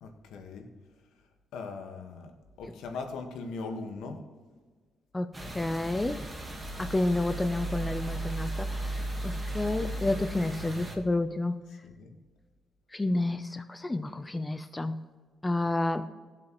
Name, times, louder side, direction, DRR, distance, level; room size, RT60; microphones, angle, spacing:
voice 1, 0.0-0.7 1.5-2.3 2.6-4.3 9.3-10.0 11.8-12.1, left 4 dB, 85° left, 5 dB, 1.4 m, -40 dB
voice 2, 5.1-6.3 6.8-8.9 9.2-11.6 12.9-14.9 15.4-16.1, left 2 dB, 15° left, 10 dB, 0.6 m, -30 dB
sound 1, 5.3-11.0, right 1 dB, 15° right, 1.5 m, -36 dB
19.5 x 7.5 x 3.1 m, 1.5 s
cardioid pair, 90°, 0 cm